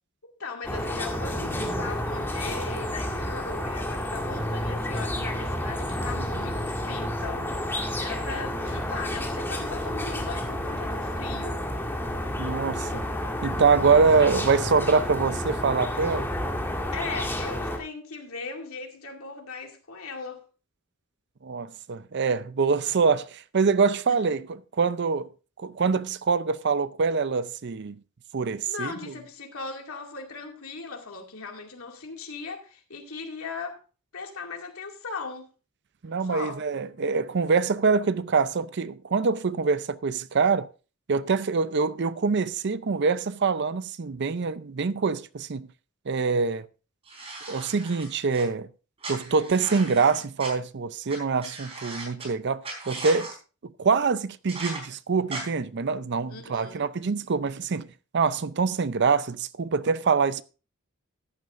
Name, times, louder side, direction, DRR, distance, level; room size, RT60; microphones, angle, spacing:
voice 1, 0.2-11.6 16.9-20.5 24.1-24.2 28.7-33.8 34.1-35.5 36.3-36.6 56.3-56.8, left 4 dB, 85° left, 2.3 m, -38 dB
sound 1, 0.6-17.8, left 1 dB, 10° left, 2.0 m, -30 dB
voice 2, 12.4-13.1 13.4-16.3 21.4-25.3 25.6-28.0 28.3-28.9 36.0-40.7 41.1-45.7 46.1-46.7 47.5-48.7 49.1-53.3 53.6-57.9 58.1-60.4, right 5 dB, 55° right, 0.6 m, -25 dB
sound 2, 47.1-48.4 49.0-50.5 51.1-51.2 51.4-52.3 52.6-53.3 54.5-54.8 55.3-55.4, right 3 dB, 30° right, 4.1 m, -37 dB
14.0 x 11.0 x 2.5 m
head